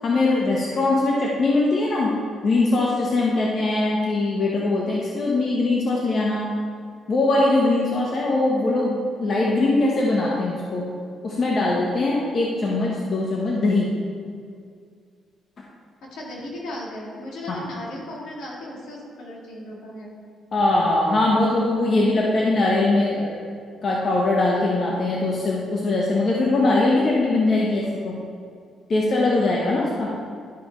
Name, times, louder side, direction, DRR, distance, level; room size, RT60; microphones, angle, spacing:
voice 1, 0.0-2.1 2.4-6.5 7.1-10.9 11.2-13.9 17.5-17.6 20.5-23.4 23.8-28.2 28.9-30.1, left 2 dB, 45° left, -3 dB, 1.1 m, -21 dB
voice 2, 16.0-20.1, left 1 dB, 75° left, -4 dB, 2.0 m, -36 dB
12.0 x 5.1 x 3.2 m, 2.2 s
cardioid pair, 90°, 0 cm